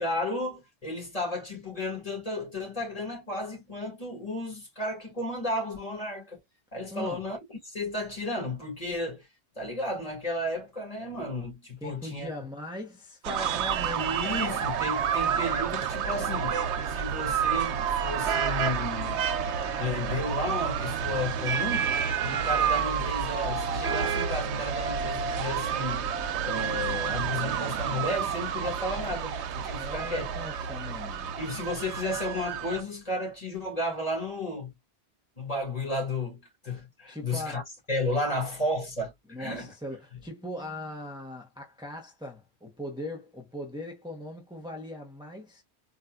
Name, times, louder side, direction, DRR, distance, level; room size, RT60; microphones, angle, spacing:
voice 1, 0.0-6.4 6.7-7.4 7.6-9.3 9.6-12.3 14.0-16.6 16.8-19.3 19.8-22.0 22.2-26.1 26.4-30.2 31.4-34.7 35.4-37.6 37.9-39.7, left 1 dB, 35° left, 1.9 m, -33 dB
voice 2, 6.9-7.2 11.8-14.2 29.6-31.3 37.1-37.6 38.2-38.4 39.3-45.6, left 1 dB, 5° right, 0.8 m, -39 dB
sound 1, 13.2-32.8, right 7 dB, 85° right, 0.9 m, -29 dB
4.1 x 2.4 x 2.3 m
omnidirectional pair, 1.1 m